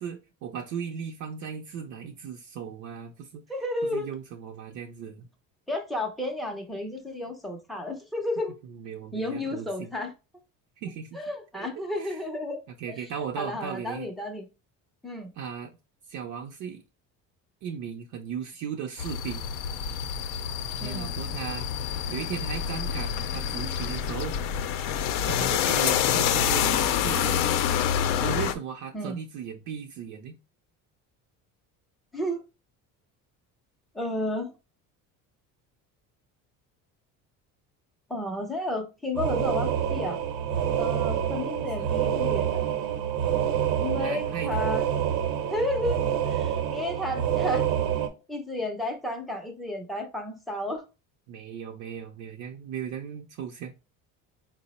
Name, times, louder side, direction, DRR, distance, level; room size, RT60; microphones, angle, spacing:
voice 1, 0.0-3.4 3.8-5.3 8.7-9.9 10.8-11.2 11.5-12.2 12.8-14.1 15.4-15.7 16.1-16.8 17.6-19.5 20.8-21.7 22.1-24.4 25.3-27.5 28.2-30.4 40.9-41.3 41.6-41.9 44.0-44.6 51.3-53.7, right 7 dB, 60° right, 0.5 m, -37 dB
voice 2, 3.5-4.1 5.7-8.5 9.1-10.1 11.1-12.6 13.4-14.5 15.0-15.3 20.8-21.1 28.9-29.2 32.1-32.4 33.9-34.5 38.1-40.2 40.8-42.6 43.8-44.8 45.5-46.0 46.3-47.7 48.3-50.8, left 1 dB, ahead, 0.4 m, -32 dB
sound 1, 19.0-28.5, left 9 dB, 75° left, 0.5 m, -27 dB
sound 2, 39.1-48.1, right 9 dB, 80° right, 0.9 m, -27 dB
4.6 x 2.0 x 4.0 m
cardioid pair, 175°, 33 cm